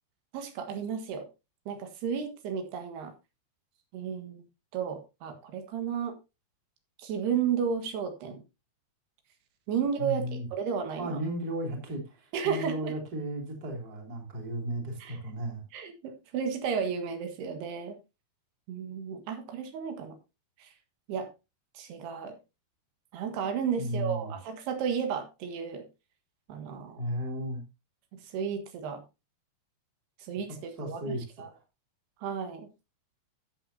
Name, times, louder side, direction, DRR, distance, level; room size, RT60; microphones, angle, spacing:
voice 1, 0.3-1.3 1.7-3.1 3.9-4.4 4.7-6.2 7.0-8.4 9.7-11.2 12.3-12.9 15.0-15.2 15.7-18.0 18.7-20.2 20.6-20.7 21.1-21.3 21.8-22.4 23.1-25.9 26.5-27.0 28.3-29.0 30.2-31.5 32.2-32.7, right 7 dB, 85° right, 6 dB, 3.7 m, -33 dB
voice 2, 10.0-10.5 11.0-15.6 23.8-24.3 26.9-27.6 30.6-31.2 31.5-31.6, right 1 dB, 25° right, 2 dB, 2.9 m, -34 dB
13.0 x 8.2 x 2.7 m, 0.26 s
omnidirectional pair, 4.5 m